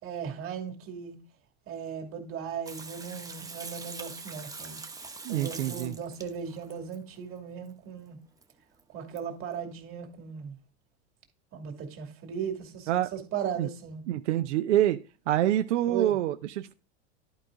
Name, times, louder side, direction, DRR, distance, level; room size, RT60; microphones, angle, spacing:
voice 1, 0.0-1.2 1.7-4.8 5.3-8.2 8.9-10.6 11.5-14.0 15.9-16.2, right 7 dB, 40° right, 2.5 m, -37 dB
Water tap faucet / Sink (filling or washing), 2.7-7.0 8.4-8.5 8.8-8.9 9.2-9.3, right 4 dB, 10° right, 0.9 m, -43 dB
voice 2, 5.2-6.0 12.9-13.1 13.6-13.7 14.1-15.0 15.3-16.7, right 13 dB, 90° right, 0.7 m, -26 dB
11.5 x 4.9 x 3.8 m
supercardioid pair, 120°, 34 cm